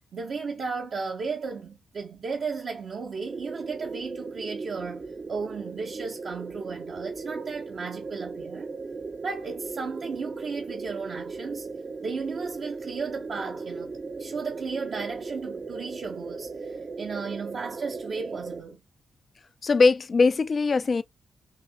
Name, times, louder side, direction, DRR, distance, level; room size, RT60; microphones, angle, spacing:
voice 1, 0.1-8.7 9.2-11.7 12.0-18.8, right 5 dB, 65° right, 0.9 m, -35 dB
sound 1, 3.2-18.6, right 4 dB, 45° right, 0.7 m, -37 dB
voice 2, 19.6-21.0, left 4 dB, 45° left, 0.4 m, -21 dB
5.5 x 2.7 x 2.3 m
cardioid pair, 70°, 0 cm